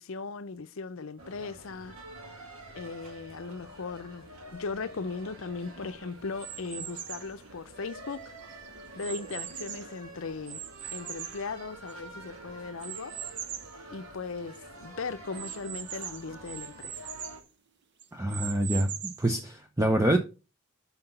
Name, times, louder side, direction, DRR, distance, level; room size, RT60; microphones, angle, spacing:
voice 1, 0.0-1.9 2.8-4.2 4.5-8.4 9.0-10.6 10.9-13.1 13.9-17.1, left 4 dB, 65° left, 0.6 m, -38 dB
sound 1, 1.2-17.4, right 1 dB, 70° right, 2.0 m, -48 dB
sound 2, 6.4-7.3 8.0-10.0 10.5-12.1 12.8-13.8 14.2-14.3 14.5-14.6 15.3-17.4 18.0-19.3, right 10 dB, 50° right, 0.7 m, -40 dB
voice 2, 18.1-20.2, right 1 dB, 15° right, 0.6 m, -26 dB
5.9 x 5.7 x 5.5 m
head